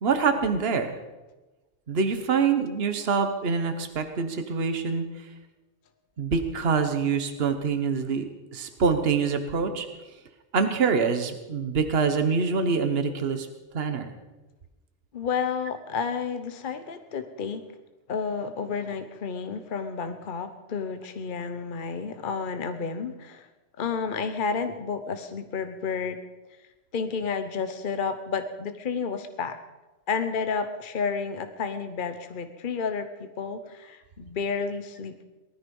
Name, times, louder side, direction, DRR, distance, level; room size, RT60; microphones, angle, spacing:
voice 1, 0.0-0.9 1.9-5.0 6.2-9.9 10.5-13.5 13.7-14.1, right 5 dB, 60° right, 7 dB, 1.4 m, -25 dB
voice 2, 15.1-17.6 18.1-23.5 23.8-26.2 26.9-29.6 30.1-35.2, left 5 dB, 50° left, 9 dB, 1.0 m, -31 dB
19.0 x 13.5 x 5.4 m, 1.1 s
omnidirectional pair, 1.2 m